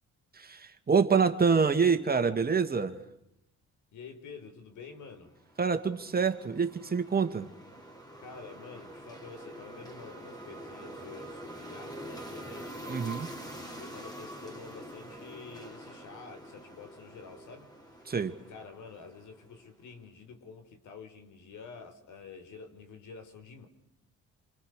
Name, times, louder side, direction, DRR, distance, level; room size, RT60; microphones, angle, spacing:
voice 1, 0.3-3.0 5.6-7.5 12.9-13.3 18.1-18.3, right 5 dB, 30° right, 7 dB, 2.3 m, -26 dB
voice 2, 3.9-5.3 8.2-13.0 13.5-17.7 18.5-23.7, left 5 dB, 75° left, 7 dB, 4.4 m, -48 dB
sound 1, 5.3-19.6, right 1 dB, 15° left, 4.2 m, -46 dB
27.0 x 26.5 x 6.7 m, 0.82 s
cardioid pair, 90°, 30 cm